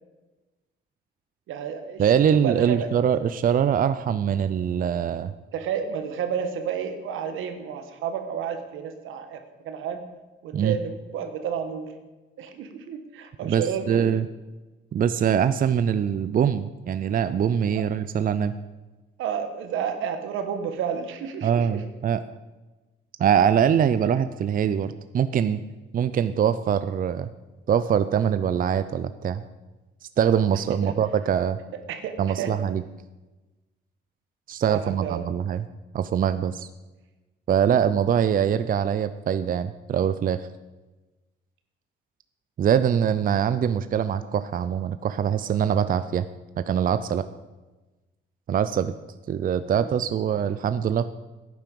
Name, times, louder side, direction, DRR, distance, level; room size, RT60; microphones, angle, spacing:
voice 1, 1.5-2.9 5.5-10.0 10.4-11.9 12.4-14.1 17.7-17.8 19.2-21.8 30.8-30.9 31.9-32.5 34.7-35.3 49.7-49.9, right 7 dB, 85° right, 8 dB, 1.4 m, -31 dB
voice 2, 2.0-5.3 10.5-10.8 13.4-14.3 14.9-18.5 21.4-22.2 23.2-25.6 25.9-27.3 27.7-29.4 30.2-31.6 32.2-32.8 34.5-35.6 35.9-36.7 37.5-40.5 42.6-46.2 46.6-47.3 48.5-48.9 49.3-51.1, right 8 dB, 45° right, 12 dB, 0.5 m, -23 dB
11.5 x 9.4 x 5.4 m, 1.1 s
cardioid pair, 90°, 20 cm